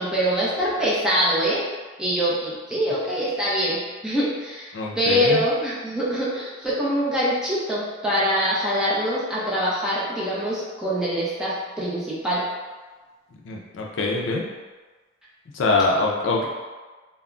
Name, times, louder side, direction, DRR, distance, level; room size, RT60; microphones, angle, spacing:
voice 1, 0.0-1.6 2.0-12.4, equal, 5° right, -8 dB, 0.5 m, -24 dB
voice 2, 4.7-5.4 13.4-14.4 15.5-16.5, left 3 dB, 70° left, -1 dB, 0.4 m, -23 dB
2.2 x 2.0 x 3.6 m, 1.3 s
head